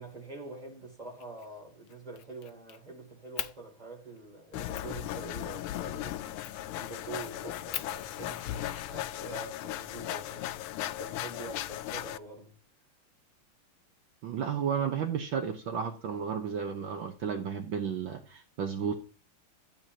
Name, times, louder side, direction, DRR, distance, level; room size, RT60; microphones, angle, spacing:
voice 1, 0.0-6.4 6.8-10.6 10.8-12.5, right 3 dB, 20° right, 3.1 m, -45 dB
Fire, 1.2-1.5 1.9-2.8 3.4-3.6 4.2-4.3 4.7-4.9 6.4-6.7 7.2-7.3 7.7-9.5 10.5-11.5, left 10 dB, 65° left, 1.1 m, -41 dB
sound 1, 4.5-12.2, left 13 dB, 90° left, 1.5 m, -37 dB
voice 2, 14.2-18.9, right 7 dB, 65° right, 1.6 m, -33 dB
12.5 x 8.8 x 2.9 m
omnidirectional pair, 2.4 m